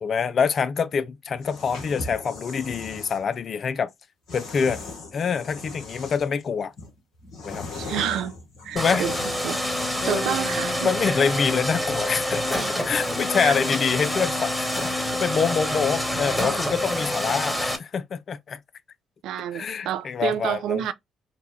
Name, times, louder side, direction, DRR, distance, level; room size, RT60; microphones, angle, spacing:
voice 1, 0.0-3.9 4.3-4.8 5.1-6.7 7.5-7.7 8.7-9.1 10.0-18.6 19.5-20.8, left 6 dB, 50° left, 0.4 m, -26 dB
sound 1, 1.3-3.2 4.3-6.4 6.8-9.7, left 3 dB, 65° left, 1.3 m, -38 dB
voice 2, 7.7-8.3 8.6-9.2 9.4-9.6 10.0-10.9 13.4-13.5 19.2-20.9, right 10 dB, 65° right, 0.4 m, -28 dB
sound 2, 8.8-17.8, equal, 5° left, 1.3 m, -27 dB
3.8 x 2.2 x 3.2 m
hypercardioid pair, 50°, 0 cm